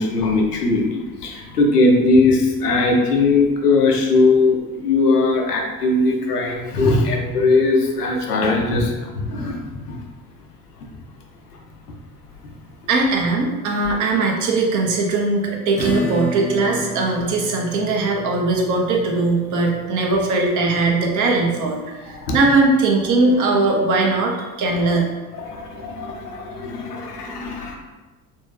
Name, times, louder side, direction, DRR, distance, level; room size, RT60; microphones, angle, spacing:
voice 1, 0.0-10.0 15.8-15.9 22.1-22.4 25.3-27.8, left 3 dB, 80° left, 1 dB, 0.6 m, -19 dB
voice 2, 12.9-25.1, right 3 dB, 40° right, 0 dB, 0.8 m, -20 dB
Acoustic guitar / Strum, 15.8-23.0, left 2 dB, 15° left, 0.8 m, -32 dB
3.3 x 2.6 x 3.2 m, 1.2 s
figure-of-eight pair, 55°, 45 cm